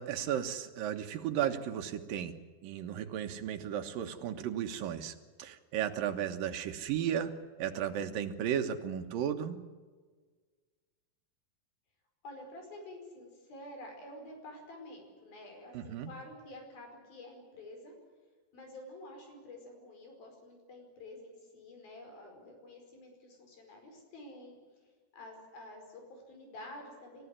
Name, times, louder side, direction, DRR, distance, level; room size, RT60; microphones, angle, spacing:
voice 1, 0.0-2.3 2.6-7.3 7.6-9.6 15.7-16.1, right 9 dB, 75° right, 7 dB, 3.0 m, -34 dB
voice 2, 12.2-17.9 18.5-24.6 25.1-27.3, left 1 dB, 80° left, 3 dB, 6.9 m, -49 dB
27.5 x 15.0 x 9.8 m, 1.5 s
omnidirectional pair, 4.2 m